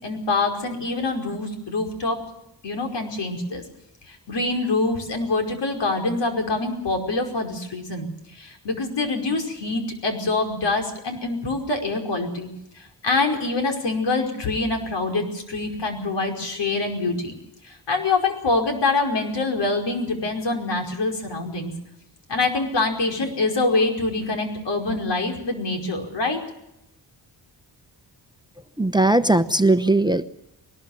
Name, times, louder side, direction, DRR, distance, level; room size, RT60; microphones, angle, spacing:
voice 1, 0.0-2.2 2.6-3.6 4.1-8.1 8.3-12.5 12.7-17.3 17.6-21.7 22.3-26.4, left 3 dB, 75° left, 3 dB, 5.3 m, -25 dB
voice 2, 28.8-30.2, right 2 dB, 10° right, 12 dB, 0.8 m, -18 dB
21.0 x 20.0 x 7.3 m, 0.84 s
wide cardioid pair, 110°, 42 cm